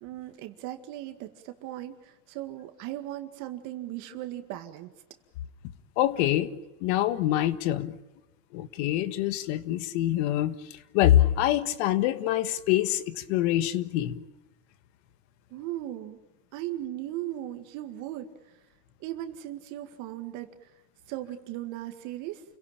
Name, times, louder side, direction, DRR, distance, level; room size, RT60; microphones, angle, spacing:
voice 1, 0.0-4.9 15.5-16.2 16.5-18.6 19.0-20.7 21.1-22.4, right 14 dB, 60° right, 6 dB, 2.0 m, -37 dB
voice 2, 6.0-6.5 6.8-8.0 8.5-14.2, left 13 dB, 70° left, 13 dB, 1.6 m, -25 dB
29.0 x 17.5 x 9.0 m, 1.1 s
supercardioid pair, 130°, 35 cm